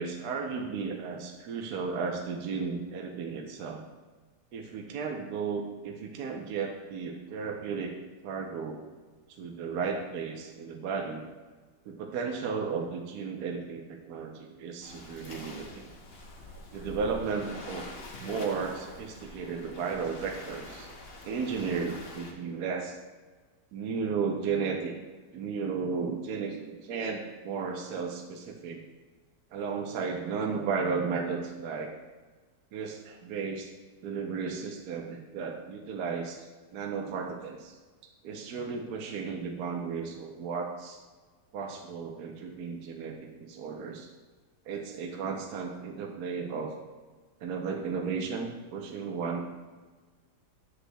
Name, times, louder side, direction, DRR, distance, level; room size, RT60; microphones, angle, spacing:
voice 1, 0.0-3.8 4.5-7.9 8.2-8.8 9.4-11.2 11.9-15.8 16.7-17.9 18.2-20.9 21.2-22.9 23.7-24.9 25.3-28.8 29.5-31.9 32.7-33.7 34.0-36.5 36.7-37.7 38.2-41.0 41.5-44.1 44.7-46.7 47.4-49.4, right 5 dB, 70° right, 2 dB, 1.3 m, -34 dB
Waves surf, 14.8-22.3, left 2 dB, 40° left, 1.0 m, -45 dB
8.1 x 8.1 x 2.2 m, 1.3 s
omnidirectional pair, 1.8 m